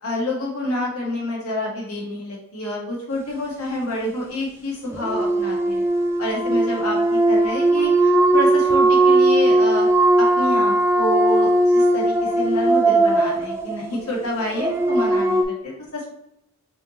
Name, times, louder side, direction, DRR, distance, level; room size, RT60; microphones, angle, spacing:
voice 1, 0.0-5.8 6.2-9.9 10.2-16.1, left 1 dB, 90° left, -3 dB, 1.6 m, -28 dB
sound 1, 4.9-15.4, right 2 dB, 10° right, 0.4 m, -18 dB
5.5 x 2.8 x 3.0 m, 0.81 s
head